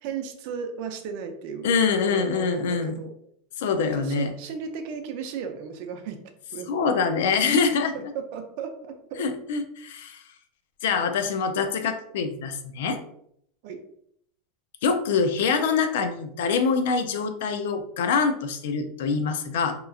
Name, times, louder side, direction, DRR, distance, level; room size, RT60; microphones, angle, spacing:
voice 1, 0.0-1.7 2.0-3.1 3.8-6.2 6.5-6.7 7.9-9.2 13.6-13.8, right 6 dB, 60° right, 6 dB, 0.4 m, -35 dB
voice 2, 1.6-3.0 3.6-4.3 6.7-7.9 9.2-10.2 10.8-13.0 14.8-19.7, left 5 dB, 80° left, 7 dB, 0.4 m, -25 dB
2.9 x 2.4 x 2.3 m, 0.69 s
supercardioid pair, 135°, 0 cm